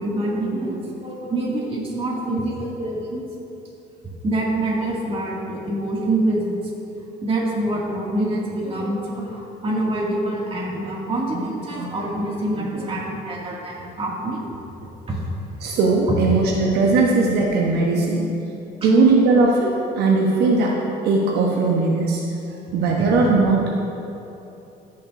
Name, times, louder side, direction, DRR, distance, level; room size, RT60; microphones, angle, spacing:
voice 1, 0.0-3.2 4.2-6.6 7.2-14.4 15.1-15.2 16.1-16.2 16.4-16.6 18.8-18.9 23.0-23.1, right 1 dB, 35° right, -4 dB, 2.2 m, -25 dB
voice 2, 15.6-18.2 18.8-20.8 21.0-22.2 22.7-23.7, right 3 dB, 75° right, -2 dB, 1.1 m, -18 dB
15.0 x 7.1 x 2.6 m, 3.0 s
cardioid pair, 110°, 17 cm